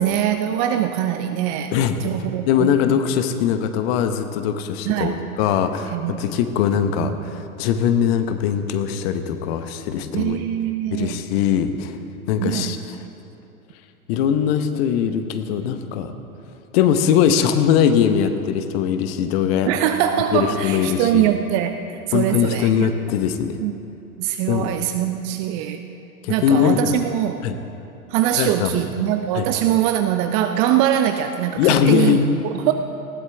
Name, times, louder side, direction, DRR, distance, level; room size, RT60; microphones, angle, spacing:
voice 1, 0.0-1.7 2.0-2.7 4.9-5.2 5.9-6.2 7.0-7.2 10.1-11.2 12.4-12.8 19.6-22.9 23.6-23.7 24.2-25.8 26.3-27.4 28.1-32.2 32.4-32.7, right 11 dB, 25° right, 7 dB, 0.5 m, -22 dB
voice 2, 1.7-2.1 2.5-10.4 10.9-12.0 12.3-12.9 14.1-16.1 16.7-19.7 20.3-21.3 22.1-23.6 24.5-24.7 26.2-26.9 27.4-27.6 28.3-28.8 29.3-29.5 31.6-32.3, left 8 dB, 40° left, 9 dB, 1.1 m, -21 dB
19.5 x 15.5 x 3.4 m, 2.8 s
figure-of-eight pair, 100°, 44 cm